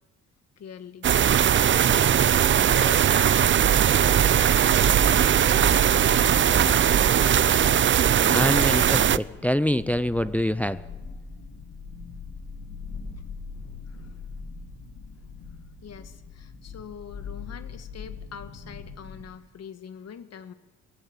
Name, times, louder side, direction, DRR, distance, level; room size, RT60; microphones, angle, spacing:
voice 1, 0.6-1.2 1.7-2.2 2.6-4.8 5.8-7.7 8.1-8.8 13.9-14.3 15.2-15.3 15.8-20.5, left 7 dB, 55° left, 10 dB, 1.7 m, -43 dB
sound 1, 1.0-9.2, right 9 dB, 40° right, 0.6 m, -19 dB
sound 2, 4.8-19.2, left 4 dB, 80° left, 5.2 m, -40 dB
voice 2, 8.3-10.8, left 1 dB, 5° left, 14 dB, 0.6 m, -25 dB
18.0 x 16.5 x 8.9 m, 1.1 s
cardioid pair, 90°, 30 cm